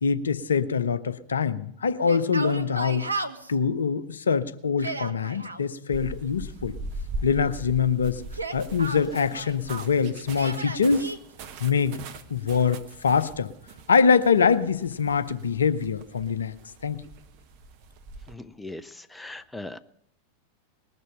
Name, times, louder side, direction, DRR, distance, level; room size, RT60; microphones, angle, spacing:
voice 1, 0.0-3.1 3.5-6.7 7.2-8.2 8.5-11.1 11.6-12.0 12.3-13.5 13.9-16.6 16.8-17.0, left 6 dB, 70° left, 12 dB, 0.7 m, -24 dB
Yell, 2.0-3.5 4.6-5.6 8.2-9.9 10.4-11.2, right 2 dB, 80° right, 0.8 m, -34 dB
sound 1, 5.9-18.3, right 2 dB, 45° right, 1.2 m, -41 dB
voice 2, 18.3-19.8, left 2 dB, 10° left, 13 dB, 0.5 m, -39 dB
19.5 x 6.7 x 8.8 m, 0.75 s
figure-of-eight pair, 90°, 0 cm